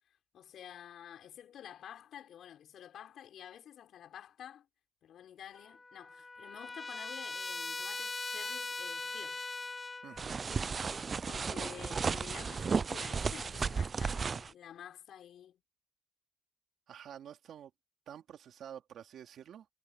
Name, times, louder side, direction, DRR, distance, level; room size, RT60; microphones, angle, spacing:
voice 1, 0.3-4.7 5.0-9.5 11.2-15.6, left 10 dB, 70° left, 6.2 m, -50 dB
Trumpet, 5.5-10.3, left 3 dB, 25° left, 1.6 m, -40 dB
voice 2, 10.0-10.4 16.9-17.7 18.1-19.7, right 9 dB, 70° right, 3.4 m, -49 dB
sound 1, 10.2-14.5, right 5 dB, 40° right, 0.4 m, -34 dB
cardioid pair, 90°, 0 cm